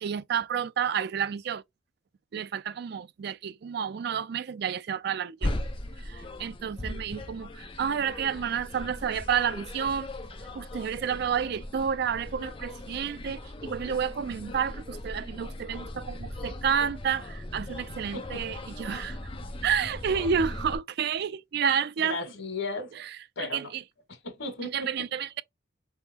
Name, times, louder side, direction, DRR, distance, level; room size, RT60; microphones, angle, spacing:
voice 1, 0.0-1.6 2.3-5.5 6.0-10.1 10.5-19.2 19.6-22.2 23.0-23.1 23.4-23.8 24.7-25.4, right 7 dB, 55° right, 0.3 m, -30 dB
sound 1, 5.4-20.8, left 1 dB, 30° left, 0.7 m, -38 dB
voice 2, 18.1-18.5 22.0-22.9 23.3-23.7 24.1-24.9, left 2 dB, 90° left, 1.5 m, -35 dB
4.3 x 3.5 x 2.8 m
head